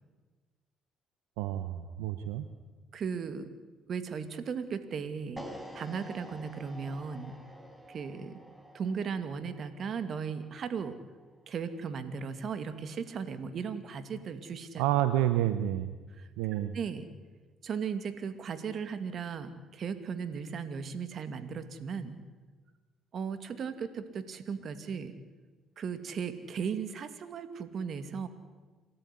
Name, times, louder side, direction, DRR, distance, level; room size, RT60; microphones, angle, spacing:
voice 1, 1.4-2.4 14.8-15.9 16.4-16.7, right 13 dB, 90° right, 11 dB, 0.9 m, -29 dB
voice 2, 2.9-3.5 3.9-5.4 5.7-7.3 7.9-8.4 8.7-10.9 11.5-14.8 16.2-16.3 16.7-17.1 17.6-22.2 23.1-25.1 25.8-28.3, right 6 dB, 55° right, 11 dB, 2.4 m, -36 dB
sound 1, 5.4-11.5, equal, 5° right, 4.9 m, -49 dB
28.5 x 13.5 x 9.9 m, 1.3 s
supercardioid pair, 60°, 0 cm